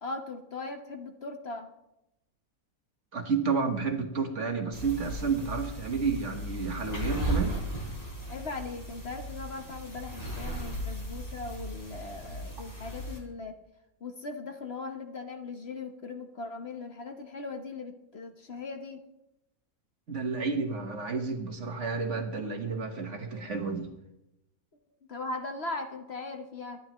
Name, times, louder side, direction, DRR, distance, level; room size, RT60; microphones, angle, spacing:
voice 1, 0.0-1.7 8.3-13.5 14.0-19.0 25.1-26.8, left 3 dB, 45° left, 5 dB, 1.2 m, -39 dB
voice 2, 3.1-7.5 20.1-23.9, right 5 dB, 55° right, 5 dB, 1.6 m, -31 dB
sound 1, 4.7-13.2, right 1 dB, 25° left, 3.5 m, -36 dB
23.5 x 11.0 x 3.1 m, 0.88 s
omnidirectional pair, 1.6 m